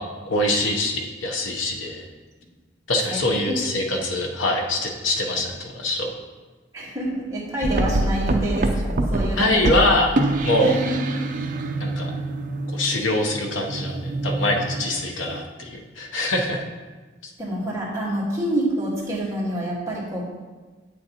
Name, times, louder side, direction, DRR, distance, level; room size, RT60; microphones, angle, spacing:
voice 1, 0.0-2.0 2.9-6.1 9.3-10.1 10.4-10.8 11.8-12.1 12.7-16.7 17.2-17.3, left 1 dB, 85° left, 2 dB, 0.9 m, -24 dB
voice 2, 6.7-9.5 9.9-10.0 10.6-11.2 17.4-20.3, right 1 dB, 15° right, -6 dB, 1.6 m, -27 dB
sound 1, 7.6-15.4, right 2 dB, 40° right, 0.5 m, -26 dB
8.3 x 6.4 x 2.9 m, 1.3 s
head